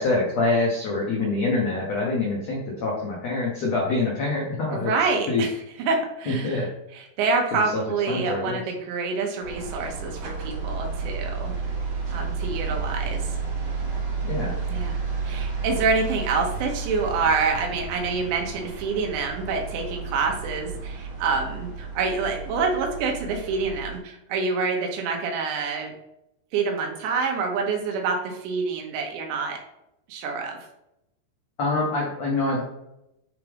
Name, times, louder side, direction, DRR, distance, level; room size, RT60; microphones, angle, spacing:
voice 1, 0.0-4.9 5.3-5.4 6.3-6.7 7.5-8.6 14.2-14.5 31.6-32.6, left 3 dB, 85° left, -3 dB, 1.4 m, -25 dB
voice 2, 4.7-6.7 6.9-11.6 12.1-13.3 14.7-15.0 15.3-25.9 26.5-29.6 30.1-30.6, right 4 dB, 85° right, 2 dB, 3.4 m, -27 dB
sound 1, 9.4-24.0, right 4 dB, 60° right, 3.8 m, -32 dB
9.7 x 3.6 x 3.5 m, 0.85 s
omnidirectional pair, 5.0 m